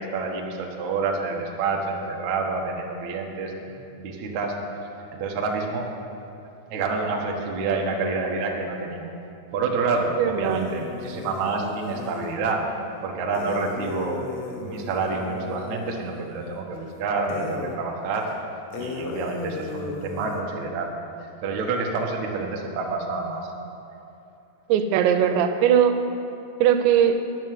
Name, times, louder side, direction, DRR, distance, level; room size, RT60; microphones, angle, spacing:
voice 1, 0.0-4.7 5.1-5.9 6.7-9.1 9.5-12.6 13.0-14.2 14.6-18.3 18.8-20.9 21.4-23.5 23.9-24.0, right 4 dB, 65° right, 0 dB, 1.9 m, -28 dB
voice 2, 10.2-10.7 24.7-26.0 26.6-27.3, right 9 dB, 90° right, 8 dB, 3.0 m, -19 dB
sound 1, 10.4-12.4 13.3-16.9 17.3-17.8 18.2-18.3 18.7-20.4, left 3 dB, 75° left, 3.0 m, -36 dB
11.0 x 6.4 x 9.3 m, 2.6 s
omnidirectional pair, 5.1 m